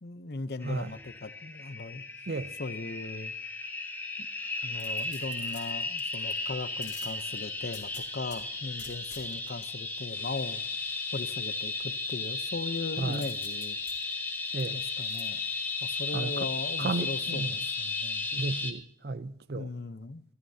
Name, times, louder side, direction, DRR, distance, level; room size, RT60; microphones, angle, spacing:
voice 1, 0.0-2.0 2.6-3.3 4.6-10.6 11.1-13.8 14.7-15.4 15.8-18.3 19.5-20.2, left 3 dB, 60° left, 0.7 m, -38 dB
sound 1, 0.6-18.7, left 3 dB, 10° left, 1.3 m, -35 dB
sound 2, 4.8-6.3 6.8-8.4 8.8-9.7 13.1-15.2 15.7-15.8, left 9 dB, 80° left, 3.2 m, -49 dB
voice 2, 16.1-16.5 16.8-17.5 18.3-19.7, right 3 dB, 60° right, 0.6 m, -33 dB
27.0 x 12.5 x 2.8 m
head